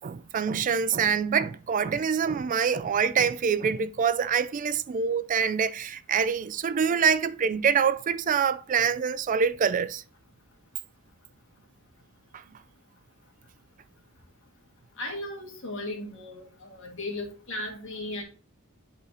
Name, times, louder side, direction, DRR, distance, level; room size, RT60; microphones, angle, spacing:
voice 1, 0.0-10.0 12.3-12.4, right 6 dB, 40° right, 0.4 m, -25 dB
voice 2, 15.0-18.2, left 1 dB, 65° left, 1.8 m, -36 dB
10.5 x 4.0 x 2.7 m
head